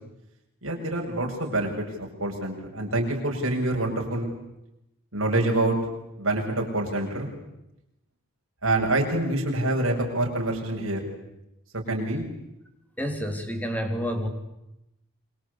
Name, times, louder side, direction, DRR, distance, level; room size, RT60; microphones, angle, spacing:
voice 1, 0.6-4.3 5.1-5.8 6.2-7.3 8.6-11.1 11.7-12.2, right 2 dB, 70° right, 0 dB, 7.5 m, -26 dB
voice 2, 13.0-14.3, equal, 5° left, 5 dB, 3.5 m, -29 dB
28.0 x 24.5 x 8.6 m, 0.88 s
head